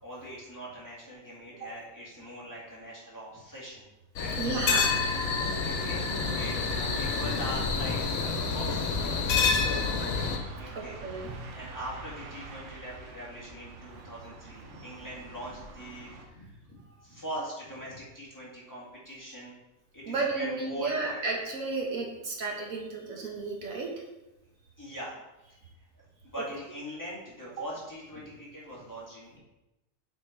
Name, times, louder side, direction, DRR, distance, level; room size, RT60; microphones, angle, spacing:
voice 1, 0.0-3.9 4.2-4.4 5.3-9.9 10.5-11.3 11.5-19.5 19.9-21.2 24.8-25.6 26.3-29.4, equal, 15° left, -7 dB, 2.1 m, -42 dB
sound 1, 4.2-10.4, left 5 dB, 85° left, 1.2 m, -28 dB
voice 2, 4.4-5.2 10.7-11.3 20.1-23.9, right 3 dB, 75° right, 0 dB, 1.6 m, -33 dB
sound 2, 4.6-16.3, right 3 dB, 60° right, 1.1 m, -44 dB
6.8 x 4.4 x 4.5 m, 0.98 s
omnidirectional pair, 1.4 m